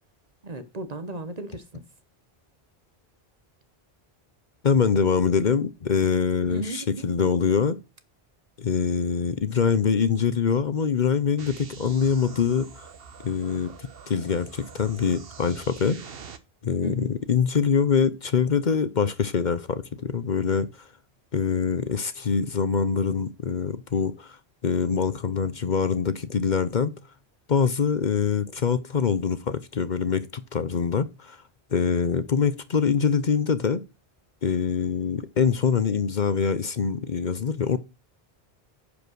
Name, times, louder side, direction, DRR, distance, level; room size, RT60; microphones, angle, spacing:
voice 1, 0.4-1.8 6.5-7.1 16.8-17.1, right 2 dB, 40° right, 1.1 m, -35 dB
voice 2, 4.6-7.8 8.6-12.8 13.2-16.0 16.6-20.7 21.3-24.4 24.6-26.9 27.5-31.4 31.7-33.8 34.4-37.8, left 6 dB, 50° left, 0.9 m, -24 dB
sound 1, 11.4-16.4, right 6 dB, 70° right, 1.2 m, -44 dB
10.0 x 5.1 x 6.2 m
omnidirectional pair, 1.0 m